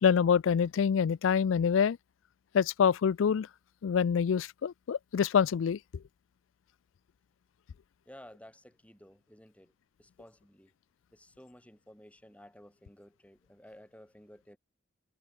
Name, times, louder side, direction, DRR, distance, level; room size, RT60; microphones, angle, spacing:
voice 1, 0.0-2.0 2.5-3.5 3.8-5.8, left 7 dB, 80° left, 0.4 m, -26 dB
voice 2, 8.0-9.7 10.0-10.7 11.1-14.6, equal, 5° left, 6.8 m, -54 dB
head